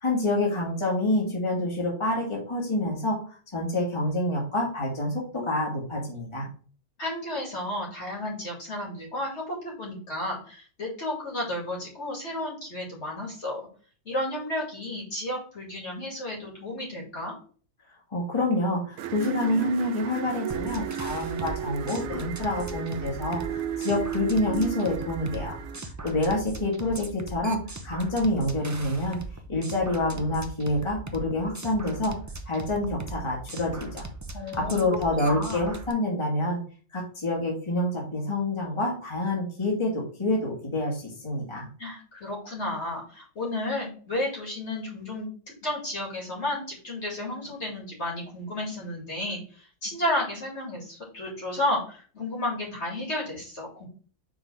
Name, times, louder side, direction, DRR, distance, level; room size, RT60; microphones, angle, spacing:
voice 1, 0.0-3.2 3.5-6.5 18.1-25.6 25.8-29.2 29.5-32.1 32.4-34.0 34.5-36.6 36.9-41.7, left 1 dB, 20° left, -2 dB, 1.7 m, -27 dB
voice 2, 7.0-13.7 14.0-17.3 34.3-34.8 35.1-35.7 41.8-53.9, left 1 dB, 50° left, -2 dB, 2.5 m, -32 dB
sound 1, 19.0-25.8, right 9 dB, 75° right, 1.0 m, -34 dB
sound 2, 20.5-35.9, right 2 dB, 25° right, 0.3 m, -39 dB
4.9 x 3.8 x 5.6 m, 0.41 s
omnidirectional pair, 1.5 m